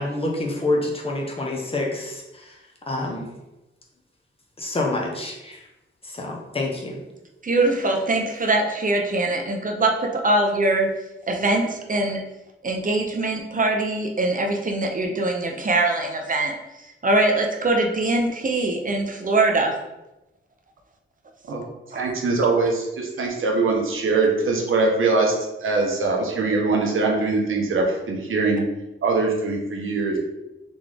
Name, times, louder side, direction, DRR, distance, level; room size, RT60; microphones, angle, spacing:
voice 1, 0.0-2.6 2.9-3.2 4.6-5.7 6.0-7.0, left 2 dB, 25° left, -1 dB, 0.9 m, -27 dB
voice 2, 7.4-9.9 10.2-10.9 11.3-12.2 12.6-16.5 17.0-19.7 21.9-22.0, right 2 dB, 40° right, 2 dB, 0.6 m, -22 dB
voice 3, 21.9-25.3 25.6-28.6 29.0-30.2, right 3 dB, 75° right, 0 dB, 1.0 m, -22 dB
3.9 x 3.5 x 3.4 m, 0.96 s
wide cardioid pair, 120°, 21 cm